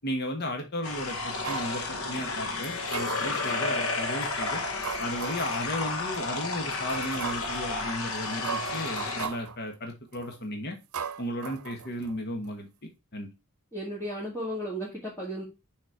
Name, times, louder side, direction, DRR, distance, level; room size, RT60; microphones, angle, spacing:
voice 1, 0.0-4.6 5.0-10.8 11.2-13.3, left 1 dB, 50° left, 4 dB, 1.3 m, -35 dB
sound 1, 0.8-9.3, left 3 dB, 70° left, 1.3 m, -32 dB
sound 2, 1.4-1.8 2.6-3.6 4.2-4.3 4.8-5.6 6.1-6.2 6.9-7.6 8.2-8.3 8.4-9.6 10.1-10.4 10.9-12.2 12.5-12.6, right 6 dB, 80° right, 0.7 m, -37 dB
voice 2, 13.7-15.4, equal, 15° left, -6 dB, 2.1 m, -34 dB
6.4 x 4.2 x 4.5 m, 0.25 s
head